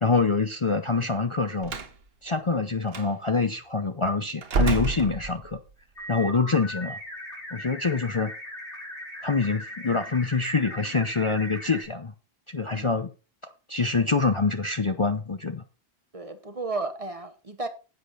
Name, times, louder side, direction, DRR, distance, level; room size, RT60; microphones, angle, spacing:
voice 1, 0.0-1.7 2.2-5.6 6.1-7.0 7.5-8.3 9.2-12.1 12.5-13.1 13.7-15.6, left 4 dB, 35° left, 0.7 m, -25 dB
Slam, 1.6-2.0 2.9-3.1 4.4-5.7, right 4 dB, 60° right, 1.2 m, -28 dB
sound 1, 6.0-11.8, equal, 85° left, 4.5 m, -39 dB
voice 2, 16.1-17.7, right 3 dB, 35° right, 1.0 m, -33 dB
10.5 x 8.0 x 4.0 m
omnidirectional pair, 1.1 m